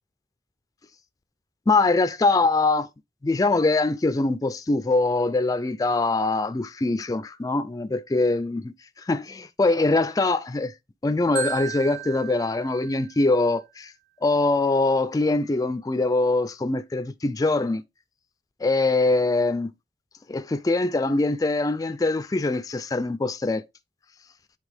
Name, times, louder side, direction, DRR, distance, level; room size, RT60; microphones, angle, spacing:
voice 1, 1.7-2.9 3.2-10.7 11.0-13.9 14.2-17.8 18.6-19.7 20.3-23.6, left 3 dB, 20° left, 0.3 m, -23 dB
Marimba xylophone, 11.4-13.4, right 11 dB, 50° right, 0.8 m, -35 dB
9.1 x 3.4 x 3.4 m
head